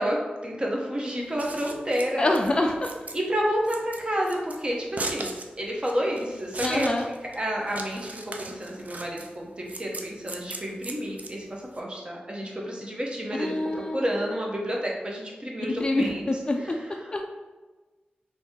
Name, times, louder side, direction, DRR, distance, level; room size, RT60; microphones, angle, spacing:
voice 1, 0.0-2.3 3.1-6.9 7.4-16.3 16.6-16.7, equal, 30° right, -2 dB, 0.8 m, -30 dB
Scissors, 1.2-11.8, right 2 dB, 50° right, 0.4 m, -38 dB
voice 2, 2.2-2.9 6.6-7.1 13.4-14.1 15.8-17.2, left 1 dB, 30° left, 2 dB, 0.3 m, -26 dB
2.9 x 2.6 x 3.6 m, 1.2 s
wide cardioid pair, 70°, 3 cm